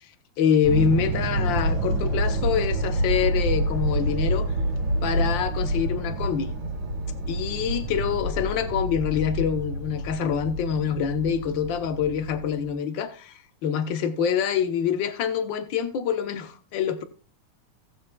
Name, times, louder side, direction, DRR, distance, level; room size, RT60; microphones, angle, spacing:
voice 1, 0.4-4.5 5.0-6.5 7.3-17.0, left 7 dB, 75° left, 1.0 m, -26 dB
sound 1, 0.6-12.7, right 1 dB, 45° right, 2.1 m, -27 dB
17.5 x 7.3 x 2.3 m
omnidirectional pair, 3.4 m